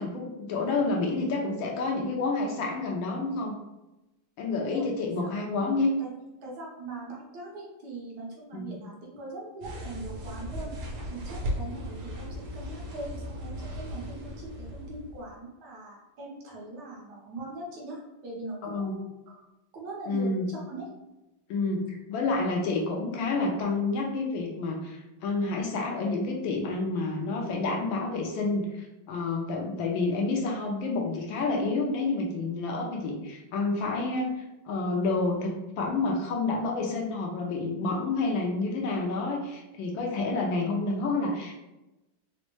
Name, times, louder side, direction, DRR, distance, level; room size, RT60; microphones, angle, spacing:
voice 1, 0.0-3.5 4.4-5.9 8.5-8.6 18.6-18.9 20.1-20.5 21.5-28.7 29.1-34.3 34.7-41.5, left 3 dB, 75° left, 0 dB, 1.3 m, -29 dB
voice 2, 4.5-5.7 6.0-6.1 6.4-10.7 11.1-19.5 19.7-20.9, right 2 dB, 60° right, -3 dB, 1.3 m, -41 dB
sound 1, 9.6-15.4, equal, 85° right, 1.5 m, -37 dB
4.1 x 2.1 x 3.0 m, 0.98 s
omnidirectional pair, 2.3 m